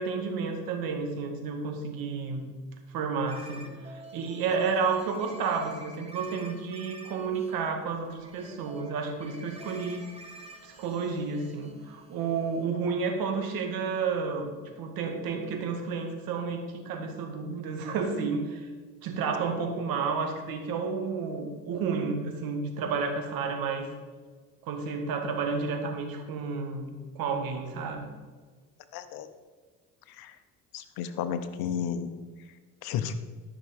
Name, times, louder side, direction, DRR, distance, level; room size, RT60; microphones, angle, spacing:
voice 1, 0.0-2.5 2.9-10.0 10.6-18.7 19.0-23.9 24.6-28.1, right 5 dB, 70° right, 4 dB, 2.1 m, -31 dB
sound 1, 3.3-12.7, right 2 dB, 15° right, 1.8 m, -49 dB
voice 2, 28.9-29.3 30.1-30.4 30.7-32.1 32.8-33.1, left 8 dB, 80° left, 11 dB, 1.0 m, -32 dB
13.0 x 6.2 x 5.3 m, 1.4 s
supercardioid pair, 85°, 36 cm